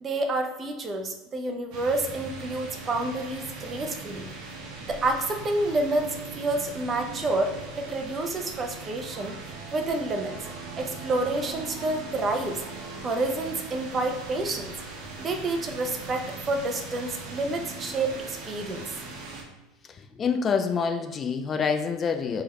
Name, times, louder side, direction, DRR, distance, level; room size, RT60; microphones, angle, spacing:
voice 1, 0.0-4.3 4.9-9.4 9.7-10.3 10.8-12.6 13.0-14.7 15.2-18.9, right 2 dB, 30° right, 5 dB, 0.8 m, -29 dB
sound 1, 1.7-19.4, right 3 dB, 60° right, 1.1 m, -40 dB
voice 2, 19.9-22.4, left 6 dB, 35° left, 5 dB, 0.6 m, -27 dB
3.5 x 3.5 x 4.4 m, 1.1 s
hypercardioid pair, 85°, 0 cm